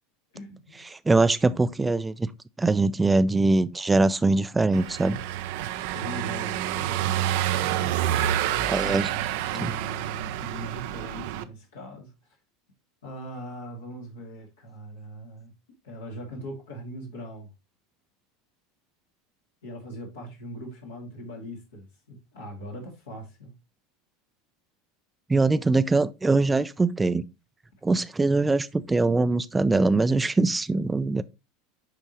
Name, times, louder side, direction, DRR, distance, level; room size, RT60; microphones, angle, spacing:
voice 1, 0.3-0.8 5.8-7.4 8.8-12.1 13.0-15.5 15.8-17.5 19.6-23.5, equal, 80° left, 2.6 m, -40 dB
voice 2, 0.9-2.3 2.6-5.2 8.7-9.1 9.6-9.7 25.3-27.2 27.8-31.2, right 3 dB, 15° right, 0.5 m, -22 dB
Car passing by / Engine, 4.7-11.4, right 12 dB, 65° right, 0.6 m, -28 dB
11.0 x 3.6 x 3.1 m
hypercardioid pair, 80°, 0 cm